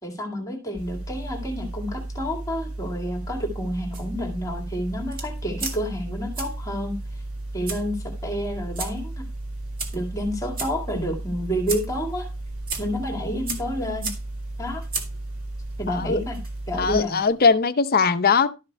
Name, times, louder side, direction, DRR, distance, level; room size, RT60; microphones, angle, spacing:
voice 1, 0.0-7.0 7.5-9.3 9.9-12.3 12.8-14.1 14.6-14.8 15.8-16.4 16.7-17.2, equal, 15° left, 2.0 m, -29 dB
sound 1, 0.7-16.9, right 1 dB, 75° right, 6.3 m, -34 dB
sound 2, 3.9-17.5, right 4 dB, 40° right, 2.1 m, -38 dB
voice 2, 15.9-16.2 16.7-18.5, left 5 dB, 45° left, 0.7 m, -20 dB
12.5 x 5.7 x 4.5 m
head